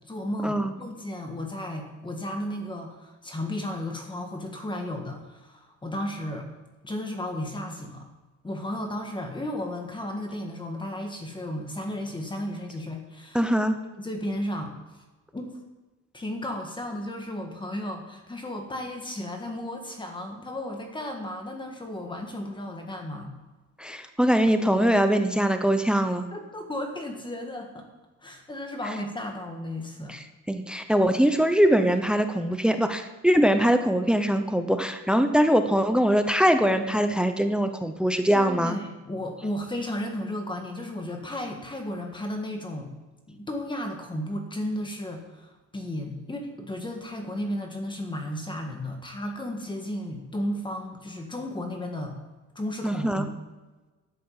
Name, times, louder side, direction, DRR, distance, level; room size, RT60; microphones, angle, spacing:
voice 1, 0.1-6.5 6.8-8.1 8.4-13.5 14.0-14.7 15.3-15.5 16.1-23.3 26.3-27.9 28.2-30.2 38.3-42.9 43.3-52.2 52.5-53.3, left 1 dB, 15° left, 3 dB, 1.7 m, -34 dB
voice 2, 13.3-13.7 23.8-26.3 30.1-38.8 52.8-53.3, equal, 5° right, 8 dB, 0.7 m, -22 dB
11.5 x 8.3 x 7.3 m, 1.2 s
cardioid pair, 135°, 29 cm